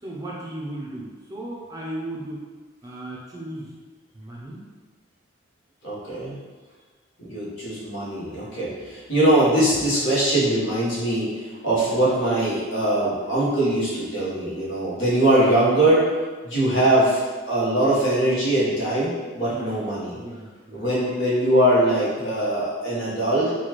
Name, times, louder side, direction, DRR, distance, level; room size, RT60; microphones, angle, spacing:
voice 1, 0.0-2.4 2.8-3.7 4.1-4.7 7.3-7.4 11.9-12.0 19.5-19.8 20.1-20.9 22.2-22.4, right 1 dB, 20° right, -4 dB, 0.5 m, -36 dB
voice 2, 5.8-6.4 7.2-16.1 16.4-20.2 20.7-23.5, right 1 dB, 70° left, -8 dB, 1.3 m, -22 dB
4.1 x 2.3 x 3.0 m, 1.4 s
head